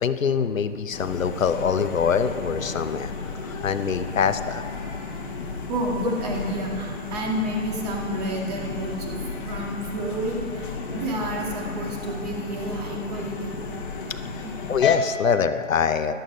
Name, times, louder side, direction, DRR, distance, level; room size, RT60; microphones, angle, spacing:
voice 1, 0.0-4.6 14.7-16.1, left 6 dB, 70° left, 10 dB, 0.8 m, -24 dB
sound 1, 0.9-15.0, left 5 dB, 40° left, 1.4 m, -33 dB
voice 2, 5.7-13.6 14.4-14.5, right 1 dB, 30° right, 0 dB, 2.0 m, -30 dB
13.5 x 11.5 x 5.4 m, 2.7 s
figure-of-eight pair, 150°, 41 cm